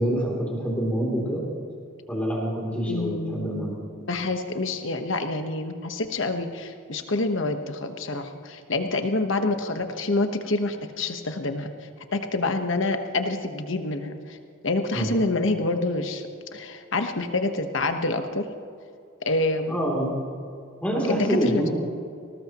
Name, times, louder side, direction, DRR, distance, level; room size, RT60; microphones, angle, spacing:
voice 1, 0.0-1.4 2.1-3.8 14.9-15.2 19.7-20.2 20.8-21.7, equal, 5° left, -3 dB, 3.1 m, -26 dB
voice 2, 2.9-3.8 4.0-14.4 14.6-18.5 19.3-19.9 21.1-21.7, left 2 dB, 60° left, 7 dB, 1.2 m, -27 dB
20.5 x 18.5 x 3.0 m, 2.4 s
head